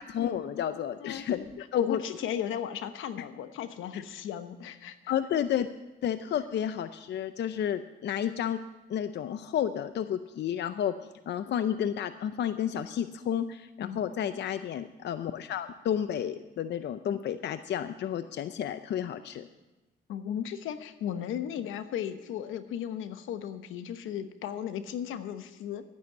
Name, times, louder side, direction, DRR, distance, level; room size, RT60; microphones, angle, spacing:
voice 1, 0.0-1.4 1.7-2.0 3.9-4.0 5.1-5.7 6.0-8.6 8.9-10.9 11.3-19.5, left 9 dB, 60° left, 11 dB, 0.6 m, -31 dB
voice 2, 0.7-1.2 1.7-5.0 13.8-14.1 20.1-25.8, left 9 dB, 85° left, 10 dB, 1.0 m, -35 dB
12.5 x 9.5 x 7.9 m, 1.1 s
cardioid pair, 90°, 20 cm